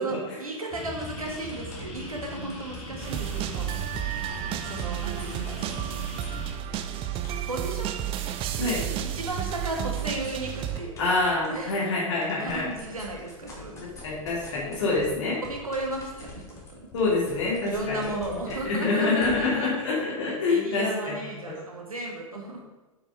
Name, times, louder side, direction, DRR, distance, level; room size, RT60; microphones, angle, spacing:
voice 1, 0.0-3.7 4.6-5.9 7.4-7.9 8.6-11.0 11.5-11.9 12.4-13.8 15.4-16.9 17.6-19.7 20.5-22.6, right 2 dB, 80° right, 0 dB, 2.4 m, -35 dB
sound 1, 0.7-6.5, left 1 dB, 35° left, 3.0 m, -40 dB
sound 2, 0.9-5.8 6.2-11.7 12.1-19.3, left 3 dB, 15° left, 3.1 m, -46 dB
sound 3, 3.0-10.8, right 11 dB, 30° right, 0.6 m, -32 dB
voice 2, 11.0-12.7 14.0-15.4 16.9-18.1 18.6-21.2, left 3 dB, 60° left, -5 dB, 3.0 m, -26 dB
8.8 x 7.3 x 5.0 m, 1.1 s
figure-of-eight pair, 95°, 18 cm